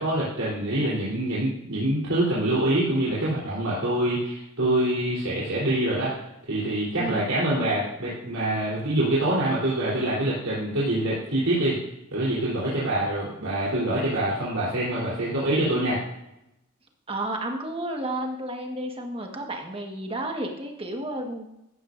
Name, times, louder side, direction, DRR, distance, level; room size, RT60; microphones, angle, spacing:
voice 1, 0.0-6.1 6.4-11.8 12.1-16.0, right 1 dB, 75° right, -8 dB, 3.8 m, -25 dB
voice 2, 17.1-21.5, right 1 dB, 25° right, 2 dB, 1.6 m, -32 dB
15.0 x 11.0 x 2.6 m, 0.87 s
head